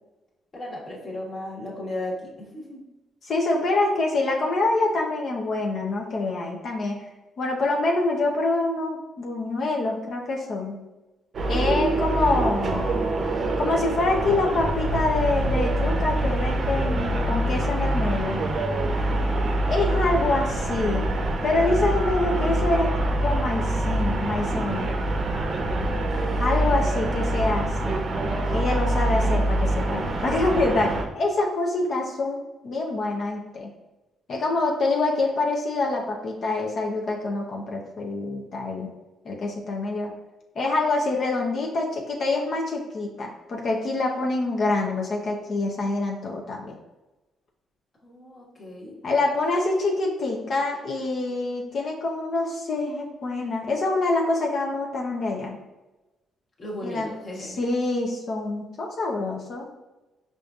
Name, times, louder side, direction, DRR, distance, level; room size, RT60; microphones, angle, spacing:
voice 1, 0.5-2.8 11.8-11.9 18.9-19.2 48.0-49.0 56.6-57.6, left 1 dB, 40° left, -5 dB, 1.4 m, -36 dB
voice 2, 3.2-7.0 7.4-10.8 11.5-12.8 13.6-18.4 19.7-21.1 21.4-22.9 23.2-24.9 26.4-28.0 28.5-33.7 34.3-38.9 39.2-40.1 40.6-46.8 49.0-55.6 56.8-57.1 57.4-59.7, left 2 dB, 55° left, -1 dB, 0.7 m, -26 dB
sound 1, 11.3-31.0, right 1 dB, 50° right, 0.6 m, -25 dB
4.9 x 2.6 x 2.4 m, 1.1 s
cardioid pair, 90°, 0 cm